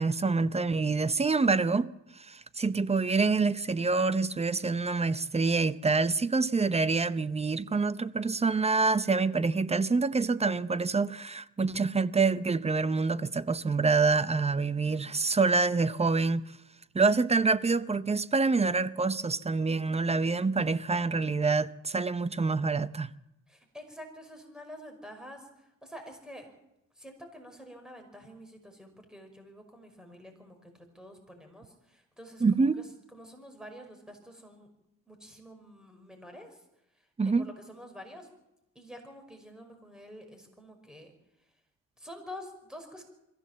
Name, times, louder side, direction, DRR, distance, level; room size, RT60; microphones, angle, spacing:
voice 1, 0.0-16.4 16.9-23.1 32.4-32.8 37.2-37.5, right 4 dB, 20° right, 0.7 m, -26 dB
voice 2, 14.6-15.4 23.5-26.5 27.0-32.4 32.8-34.7 35.1-36.6 37.3-38.3 38.8-41.1 42.0-43.0, equal, ahead, 5.4 m, -48 dB
23.0 x 15.5 x 7.4 m
cardioid pair, 90°, 30 cm